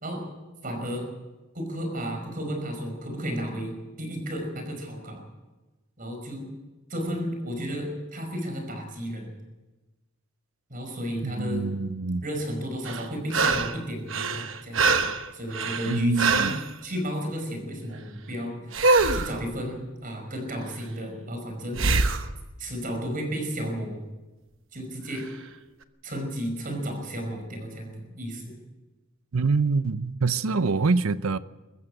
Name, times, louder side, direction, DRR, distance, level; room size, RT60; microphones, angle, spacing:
voice 1, 0.6-1.1 1.5-5.2 6.0-6.5 6.9-9.3 10.7-11.6 12.2-15.0 15.3-16.5 16.8-18.7 19.1-21.9 22.6-24.0 24.7-25.3 26.0-28.6, equal, 40° right, 5.3 m, -33 dB
voice 2, 11.2-12.2 15.9-16.6 29.3-31.4, right 4 dB, 85° right, 0.7 m, -25 dB
sound 1, 12.9-13.8 14.1-16.7 18.7-19.4 21.8-22.3 25.2-25.3, right 3 dB, 65° right, 1.1 m, -24 dB
22.5 x 14.0 x 8.7 m
head